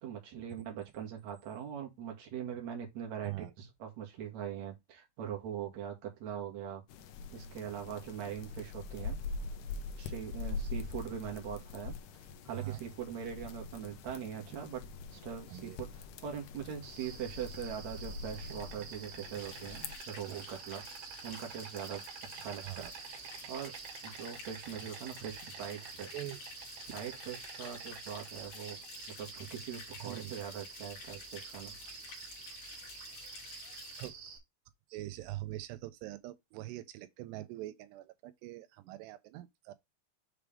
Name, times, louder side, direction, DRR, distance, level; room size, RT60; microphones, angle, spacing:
voice 1, 0.0-6.8 7.3-9.2 10.0-14.8 15.1-20.8 21.2-22.0 22.3-22.9 23.5-23.7 24.0-26.2 26.9-28.8 29.2-31.8, right 8 dB, 50° right, 3.0 m, -42 dB
sound 1, 6.9-20.0, left 4 dB, 80° left, 1.9 m, -43 dB
voice 2, 12.5-12.8 15.5-15.8 22.6-22.9 26.1-26.4 30.0-30.3 32.1-32.2 34.0-34.1 34.9-39.7, right 16 dB, 90° right, 2.9 m, -43 dB
Insect, 16.8-34.4, right 6 dB, 70° right, 3.6 m, -48 dB
sound 2, 19.3-34.1, left 6 dB, 55° left, 2.7 m, -51 dB
7.3 x 5.0 x 3.4 m
omnidirectional pair, 4.7 m